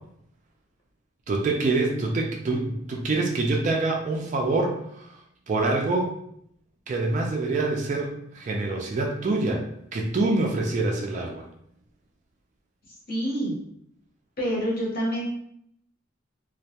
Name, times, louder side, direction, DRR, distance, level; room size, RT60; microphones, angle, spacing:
voice 1, 1.3-5.1 5.5-6.1 6.9-9.6 9.9-11.4, right 2 dB, 35° right, 1 dB, 0.3 m, -25 dB
voice 2, 12.9-13.6 14.4-15.3, equal, 45° left, -4 dB, 0.8 m, -27 dB
2.2 x 2.1 x 2.7 m, 0.71 s
head